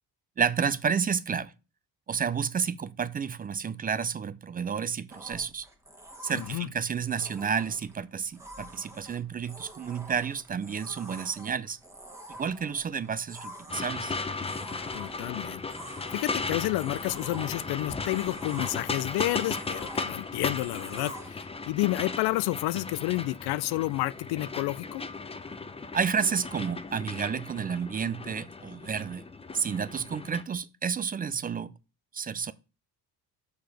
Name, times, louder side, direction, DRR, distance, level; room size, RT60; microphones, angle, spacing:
voice 1, 0.4-1.5 2.1-5.7 6.2-11.8 12.3-14.1 25.9-29.3 29.5-31.7 32.1-32.5, right 6 dB, 25° right, 0.3 m, -30 dB
sound 1, 5.1-21.3, right 1 dB, 5° right, 1.3 m, -47 dB
voice 2, 6.3-6.7 14.9-15.6 16.1-25.0, left 18 dB, 90° left, 0.5 m, -30 dB
sound 2, 13.7-30.4, left 4 dB, 15° left, 0.7 m, -36 dB
6.4 x 4.9 x 6.8 m
cardioid pair, 125°, 38 cm